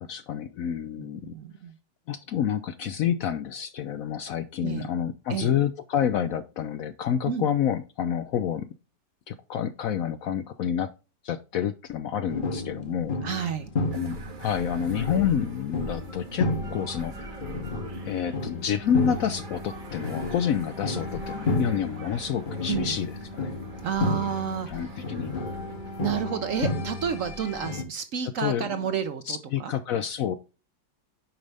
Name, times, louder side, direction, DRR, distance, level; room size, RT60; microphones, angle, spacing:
voice 1, 0.0-1.3 2.1-8.7 9.3-10.9 11.2-13.4 13.9-17.4 18.0-23.5 24.7-25.4 28.4-28.6 29.3-30.4, left 8 dB, 70° left, 11 dB, 0.8 m, -28 dB
voice 2, 1.0-1.8 4.6-4.9 5.3-5.5 7.3-7.5 13.2-13.7 22.7-23.0 23.8-25.0 26.0-29.7, right 8 dB, 60° right, 10 dB, 0.9 m, -30 dB
sound 1, 12.3-27.8, left 3 dB, 40° left, 0.9 m, -32 dB
sound 2, 13.8-26.2, right 4 dB, 40° right, 0.8 m, -44 dB
8.8 x 5.3 x 3.3 m, 0.32 s
omnidirectional pair, 1.9 m